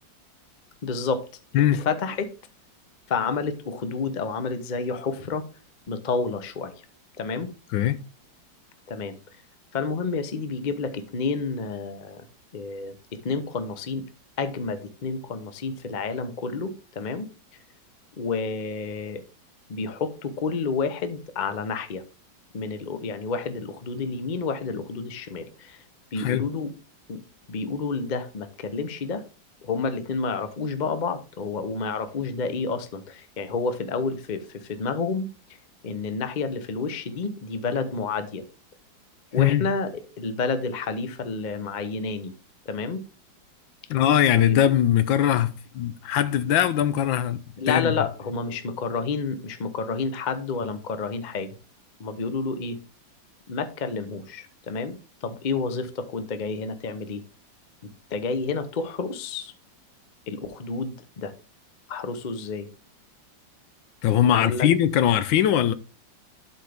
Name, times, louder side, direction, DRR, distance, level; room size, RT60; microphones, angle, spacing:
voice 1, 0.8-1.2 1.7-2.3 3.1-5.4 5.9-6.7 7.2-7.5 8.9-9.2 9.7-12.3 12.5-14.1 14.4-17.3 18.2-19.2 19.7-22.0 22.5-25.8 26.1-26.7 27.1-27.2 27.5-29.2 29.6-35.3 35.8-38.4 39.3-39.9 40.2-42.3 42.7-43.0 44.5-44.6 47.6-51.5 52.0-52.8 53.5-57.2 58.1-59.5 60.3-61.3 61.9-62.7 64.3-64.7, left 4 dB, 55° left, 0.5 m, -29 dB
voice 2, 26.2-26.5 39.4-39.6 43.9-47.4 47.7-47.9 64.0-65.7, left 11 dB, 80° left, 1.4 m, -21 dB
11.5 x 4.5 x 3.4 m
omnidirectional pair, 2.1 m